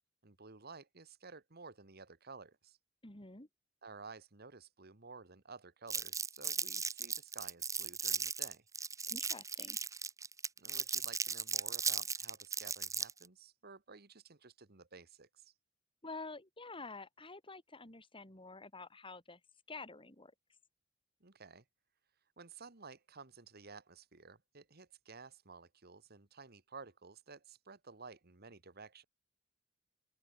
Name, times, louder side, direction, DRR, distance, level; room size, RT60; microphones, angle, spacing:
voice 1, 0.2-2.8 3.8-8.7 10.6-15.5 21.2-21.6 22.4-29.0, right 4 dB, 50° right, 1.8 m, -54 dB
voice 2, 3.0-3.5 9.1-9.8 16.0-19.4 19.7-20.3, left 3 dB, 25° left, 4.0 m, -49 dB
Crumpling crinkling, 5.9-13.3, right 5 dB, 15° right, 1.1 m, -37 dB
open air
head